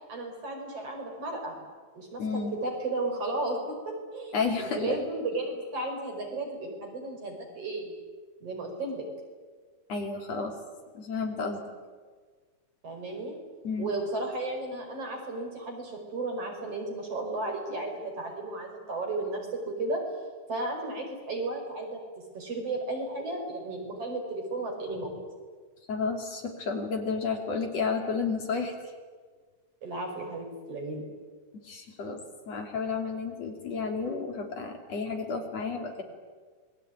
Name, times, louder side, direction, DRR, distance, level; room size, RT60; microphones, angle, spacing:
voice 1, 0.1-1.6 1.9-7.9 8.4-9.0 12.8-13.4 13.8-20.0 20.5-22.0 22.3-25.1 29.8-31.0, right 2 dB, 50° right, 2 dB, 6.1 m, -34 dB
voice 2, 2.2-2.5 4.3-5.0 9.9-10.6 10.9-11.6 13.6-13.9 25.9-28.7 31.6-32.2 32.5-36.0, left 4 dB, 55° left, 3 dB, 3.9 m, -31 dB
27.0 x 21.5 x 9.4 m, 1.5 s
omnidirectional pair, 3.6 m